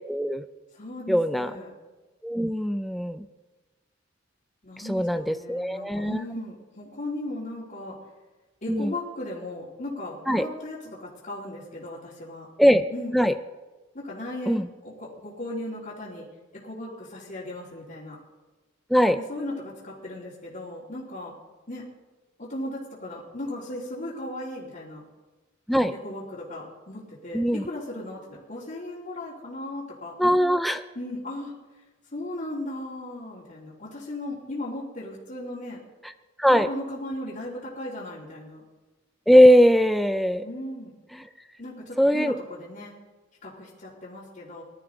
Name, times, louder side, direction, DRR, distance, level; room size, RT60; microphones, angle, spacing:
voice 1, 0.1-0.4 1.1-1.5 2.2-3.2 4.9-6.2 8.7-8.9 10.3-10.5 12.6-12.9 13.1-13.3 14.5-14.7 18.9-19.2 25.7-25.9 27.3-27.6 30.2-30.8 36.4-36.7 39.3-40.4 41.1-41.2 42.0-42.3, equal, ahead, 9 dB, 0.4 m, -20 dB
voice 2, 0.7-1.7 4.6-8.0 8.6-12.5 12.9-13.2 13.9-16.2 16.5-18.2 19.1-21.4 21.7-21.8 22.4-25.0 26.0-30.2 30.9-31.5 32.1-35.8 36.5-38.6 40.4-40.9 41.6-42.9 43.4-44.6, left 1 dB, 45° left, -9 dB, 3.1 m, -36 dB
21.0 x 13.0 x 3.9 m, 1.2 s
head